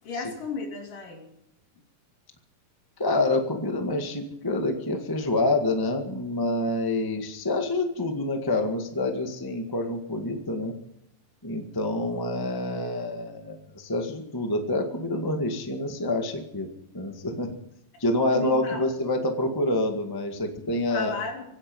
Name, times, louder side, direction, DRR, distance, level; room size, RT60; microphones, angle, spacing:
voice 1, 0.0-1.3 17.9-18.0 18.3-18.9 20.7-21.4, left 4 dB, 70° left, 1 dB, 4.8 m, -34 dB
voice 2, 3.0-10.7 11.4-16.7 16.9-17.5 18.0-21.1, left 2 dB, 15° left, 4 dB, 0.7 m, -27 dB
25.0 x 9.6 x 5.4 m, 0.79 s
omnidirectional pair, 4.0 m